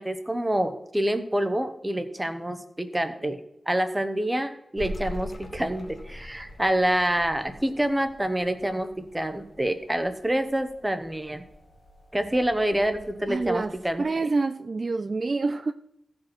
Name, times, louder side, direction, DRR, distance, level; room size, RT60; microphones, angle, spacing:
voice 1, 0.0-3.4 3.7-11.4 12.1-14.0, right 1 dB, 10° right, 1.0 m, -27 dB
sound 1, 4.8-14.1, left 1 dB, 35° left, 1.0 m, -44 dB
voice 2, 13.3-15.7, right 3 dB, 45° right, 0.3 m, -27 dB
16.0 x 5.3 x 4.4 m
wide cardioid pair, 115°, 0 cm